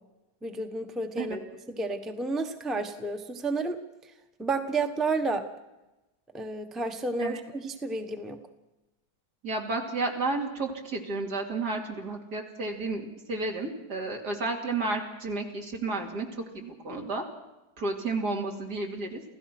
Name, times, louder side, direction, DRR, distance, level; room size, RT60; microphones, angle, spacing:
voice 1, 0.4-1.4 1.7-4.1 4.4-5.5 6.3-8.4, right 3 dB, ahead, 5 dB, 1.1 m, -31 dB
voice 2, 9.4-16.3 16.5-17.2 17.8-19.2, right 3 dB, 70° right, 2 dB, 3.4 m, -32 dB
28.5 x 16.0 x 6.1 m, 1.0 s
omnidirectional pair, 1.8 m